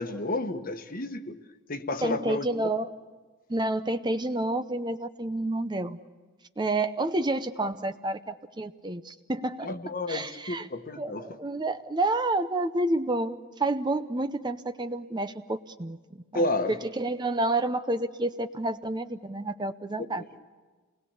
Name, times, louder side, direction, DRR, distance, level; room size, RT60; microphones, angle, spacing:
voice 1, 0.0-1.4 1.7-2.7 9.6-11.2 16.3-16.8, left 2 dB, 40° left, 8 dB, 1.3 m, -31 dB
voice 2, 2.0-2.9 3.5-6.0 6.6-9.7 10.1-10.7 11.0-16.0 16.3-20.2, right 2 dB, 20° right, 10 dB, 0.6 m, -29 dB
28.0 x 20.5 x 7.1 m, 1.4 s
head